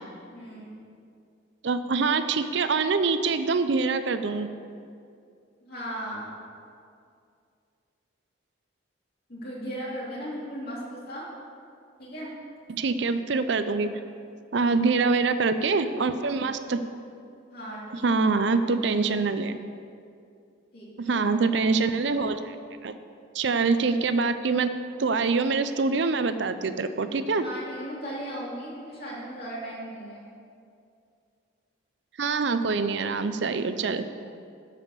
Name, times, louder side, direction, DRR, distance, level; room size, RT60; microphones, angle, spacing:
voice 1, 0.3-0.8 5.6-6.3 9.3-11.3 12.0-12.3 17.5-18.1 20.7-21.4 27.4-30.3, equal, 50° left, -5 dB, 2.9 m, -37 dB
voice 2, 1.6-4.5 12.7-13.9 14.5-16.8 17.9-19.6 21.0-22.6 22.8-22.9 23.3-24.7 25.0-27.4 32.2-34.1, right 4 dB, 65° right, 10 dB, 0.5 m, -25 dB
12.5 x 5.0 x 6.6 m, 2.4 s
head